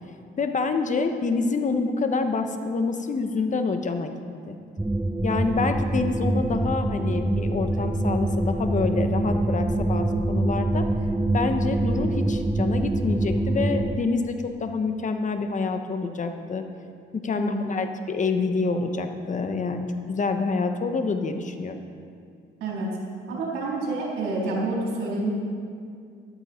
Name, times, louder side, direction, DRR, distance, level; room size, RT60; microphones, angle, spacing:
voice 1, 0.4-4.2 4.5-4.6 5.2-10.9 11.3-16.6 17.1-21.7, left 4 dB, 40° left, 6 dB, 1.2 m, -27 dB
sound 1, 4.8-14.0, right 2 dB, 5° right, 0.4 m, -25 dB
voice 2, 17.4-17.7 22.6-22.9 23.3-25.3, right 2 dB, 90° right, -4 dB, 3.9 m, -28 dB
14.0 x 12.5 x 4.5 m, 2.3 s
cardioid pair, 90°, 20 cm